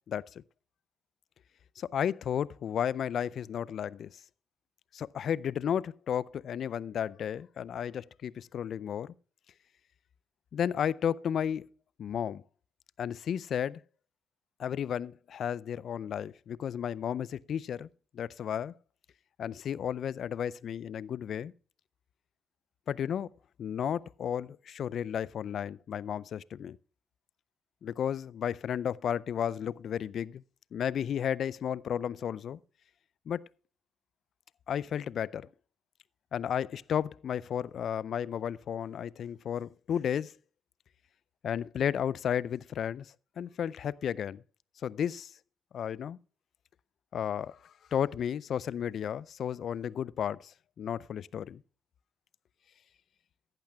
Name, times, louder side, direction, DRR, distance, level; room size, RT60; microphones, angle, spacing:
voice 1, 0.1-0.4 1.8-4.1 4.9-9.1 10.5-11.7 12.0-12.4 13.0-13.8 14.6-17.9 18.1-18.7 19.4-21.5 22.9-23.3 23.6-26.8 27.8-30.4 30.7-32.6 33.3-33.5 34.7-35.5 36.3-40.3 41.4-44.4 44.8-45.3 45.7-46.2 47.1-51.6, left 9 dB, 60° left, 0.4 m, -33 dB
16.0 x 11.5 x 2.3 m
hypercardioid pair, 55°, 0 cm